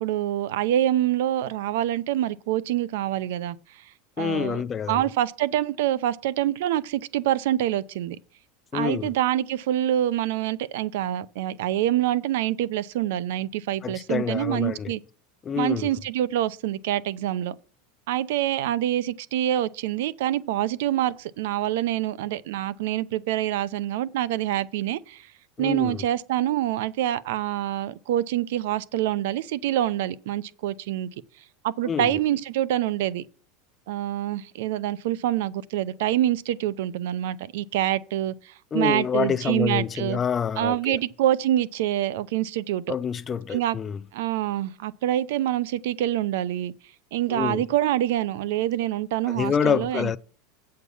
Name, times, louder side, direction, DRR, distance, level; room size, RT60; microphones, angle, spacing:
voice 1, 0.0-3.8 4.2-8.2 8.7-15.0 15.5-17.5 18.1-25.3 25.6-31.1 31.6-33.2 33.9-40.2 40.6-43.0 43.5-43.8 44.1-46.7 47.1-50.2, right 12 dB, 75° right, 0.6 m, -26 dB
voice 2, 4.2-5.0 8.7-9.1 13.8-14.9 15.4-15.9 25.6-26.0 31.9-32.1 38.7-41.0 42.9-44.0 47.3-47.6 49.3-50.2, left 7 dB, 20° left, 0.4 m, -27 dB
8.2 x 6.6 x 5.5 m
supercardioid pair, 140°, 0 cm